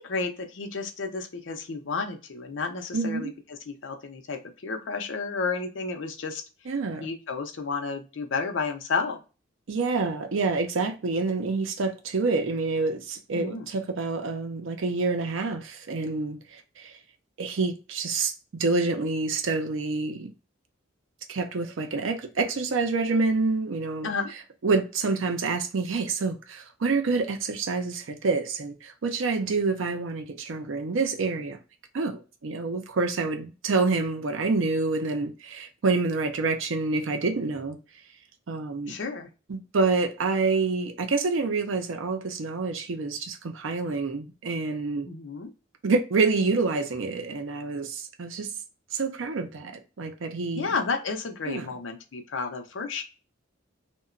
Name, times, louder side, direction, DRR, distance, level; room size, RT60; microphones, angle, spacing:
voice 1, 0.0-3.3 3.7-6.4 7.0-9.2 13.3-13.7 24.0-24.3 38.9-39.3 45.1-45.5 50.6-53.0, left 4 dB, 70° left, 0.5 m, -31 dB
voice 2, 2.9-3.3 6.7-7.1 9.7-17.0 17.4-20.3 21.3-24.1 24.6-31.6 31.9-37.8 38.5-39.0 39.5-45.1 45.8-48.5 48.9-50.7 51.5-51.7, right 3 dB, 75° right, 0.5 m, -27 dB
2.9 x 2.2 x 2.4 m
head